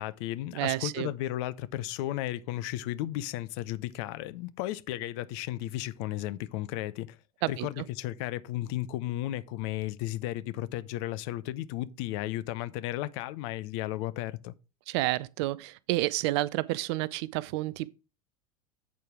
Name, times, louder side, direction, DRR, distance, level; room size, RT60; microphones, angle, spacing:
voice 1, 0.0-7.2 7.5-14.5, left 15 dB, 45° left, 0.5 m, -34 dB
voice 2, 0.5-1.1 7.4-7.9 14.9-17.9, right 18 dB, 45° right, 0.4 m, -30 dB
8.2 x 4.5 x 4.8 m
figure-of-eight pair, 80°, 19 cm